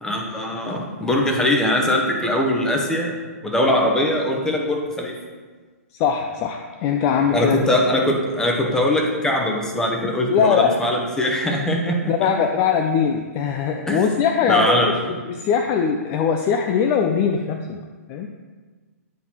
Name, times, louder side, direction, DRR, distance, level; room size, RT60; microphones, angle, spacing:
voice 1, 0.0-3.1 3.4-5.1 7.3-12.1 13.9-14.0 14.5-14.9, left 1 dB, 5° left, 0 dB, 0.9 m, -21 dB
voice 2, 6.0-7.6 10.3-10.7 12.1-14.8 15.3-17.8 18.1-18.3, left 7 dB, 30° left, 4 dB, 0.4 m, -21 dB
9.4 x 4.0 x 2.9 m, 1.4 s
hypercardioid pair, 120°, 8 cm